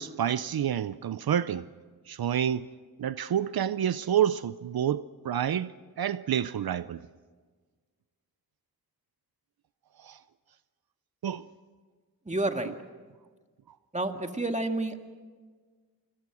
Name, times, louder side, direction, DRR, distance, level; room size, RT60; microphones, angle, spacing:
voice 1, 0.0-1.6 2.1-2.7 3.0-5.7 6.0-7.0 10.0-10.2 11.2-11.5, right 9 dB, 80° right, 0.6 m, -28 dB
voice 2, 12.3-12.7 13.9-15.0, right 2 dB, 20° right, 2.1 m, -29 dB
28.0 x 21.5 x 6.2 m
wide cardioid pair, 65°, 37 cm